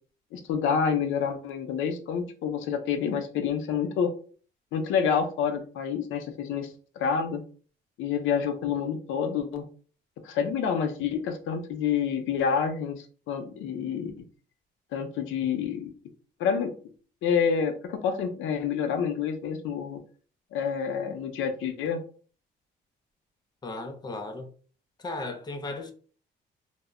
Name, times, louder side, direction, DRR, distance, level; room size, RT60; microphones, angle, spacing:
voice 1, 0.3-4.1 4.7-6.7 7.0-7.4 8.0-9.6 10.2-14.2 14.9-15.9 16.4-16.7 17.2-20.0 20.5-22.0, left 7 dB, 85° left, 0.5 m, -28 dB
voice 2, 23.6-24.5 25.0-25.9, left 2 dB, 20° left, 0.4 m, -35 dB
2.0 x 2.0 x 3.5 m
cardioid pair, 90°, 20 cm